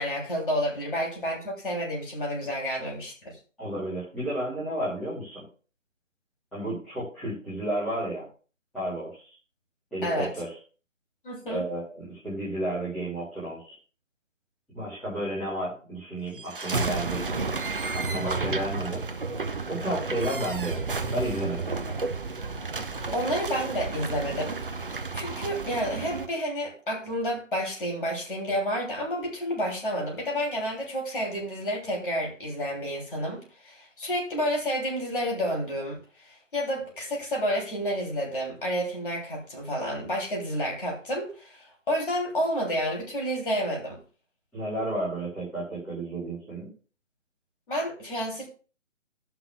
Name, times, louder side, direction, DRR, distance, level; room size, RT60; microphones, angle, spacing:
voice 1, 0.0-3.4 10.0-10.3 11.2-11.6 23.1-24.6 25.1-44.0 47.7-48.5, equal, 40° left, 2.9 m, -30 dB
voice 2, 3.6-5.4 6.5-8.3 8.7-9.4 9.9-10.5 11.5-13.8 14.7-17.5 17.9-19.0 19.7-20.8 21.1-22.0 44.5-46.7, right 1 dB, ahead, 1.0 m, -32 dB
sound 1, 16.3-26.3, right 4 dB, 45° right, 0.5 m, -32 dB
17.5 x 5.9 x 2.3 m
figure-of-eight pair, 155°, 39 cm